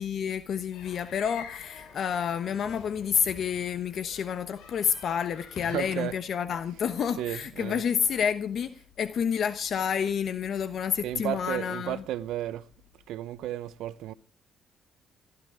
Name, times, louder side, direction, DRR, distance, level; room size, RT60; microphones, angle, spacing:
voice 1, 0.0-12.0, left 7 dB, 60° left, 1.0 m, -29 dB
sound 1, 0.7-6.2, left 6 dB, 85° left, 3.5 m, -48 dB
voice 2, 5.7-6.1 7.2-7.8 11.0-12.6 13.1-14.1, right 13 dB, 85° right, 0.7 m, -33 dB
18.0 x 13.0 x 4.9 m
cardioid pair, 90°, 0 cm